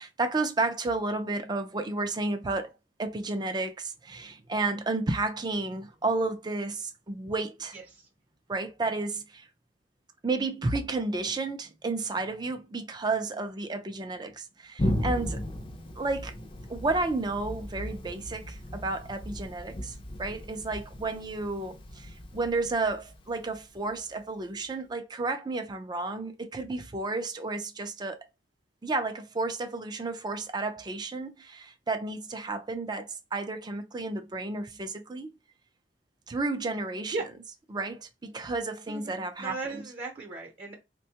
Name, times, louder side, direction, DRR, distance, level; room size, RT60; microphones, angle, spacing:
voice 1, 0.0-2.7 3.0-7.7 8.5-9.5 10.2-15.4 16.0-16.3 16.7-28.2 28.8-35.3 36.3-37.2 37.7-39.8, right 3 dB, 25° right, 0.4 m, -32 dB
voice 2, 7.7-8.1 37.1-37.2 38.9-40.7, right 3 dB, 40° right, 0.8 m, -37 dB
Thunder, 14.8-24.2, equal, 30° left, 0.5 m, -36 dB
3.5 x 2.2 x 2.8 m
head